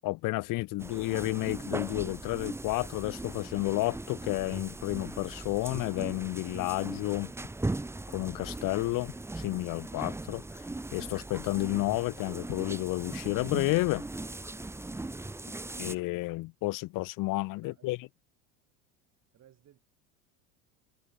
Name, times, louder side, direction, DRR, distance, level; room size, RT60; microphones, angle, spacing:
voice 1, 0.0-7.3 8.1-10.4 10.9-14.0 15.8-18.1, left 20 dB, 60° left, 1.4 m, -31 dB
sound 1, 0.8-16.0, right 2 dB, 5° right, 1.0 m, -39 dB
voice 2, 17.6-18.0 19.3-19.8, right 11 dB, 45° right, 5.7 m, -59 dB
supercardioid pair, 100°, 37 cm